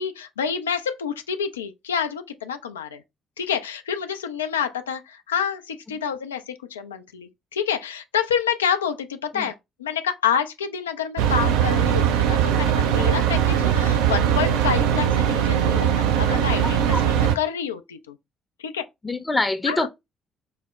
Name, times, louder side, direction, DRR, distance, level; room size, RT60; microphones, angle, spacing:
voice 1, 0.0-3.0 3.4-18.2 18.6-18.8 19.7-19.9, left 8 dB, 80° left, 0.3 m, -28 dB
sound 1, 11.2-17.3, right 9 dB, 70° right, 0.3 m, -20 dB
voice 2, 16.6-17.0 19.0-19.9, left 2 dB, 20° left, 0.6 m, -25 dB
5.6 x 2.0 x 2.3 m
figure-of-eight pair, 45°, 0 cm